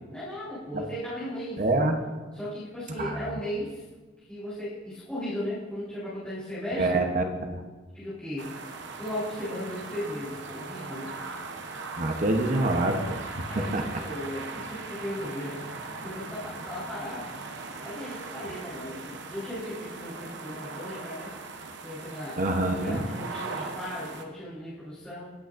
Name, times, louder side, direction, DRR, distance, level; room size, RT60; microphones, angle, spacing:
voice 1, 0.0-1.6 2.3-3.8 4.3-7.0 7.9-8.6 9.0-11.1 13.5-15.7 16.0-17.3 17.8-21.3 21.8-25.3, left 1 dB, 5° left, -13 dB, 3.9 m, -36 dB
voice 2, 1.6-1.9 3.0-3.2 6.7-7.6 12.0-13.2 13.6-13.8 22.4-23.0, right 2 dB, 45° right, 4 dB, 0.9 m, -26 dB
sound 1, 8.4-24.2, right 3 dB, 75° right, 0.9 m, -39 dB
19.0 x 8.5 x 2.6 m, 1.2 s
head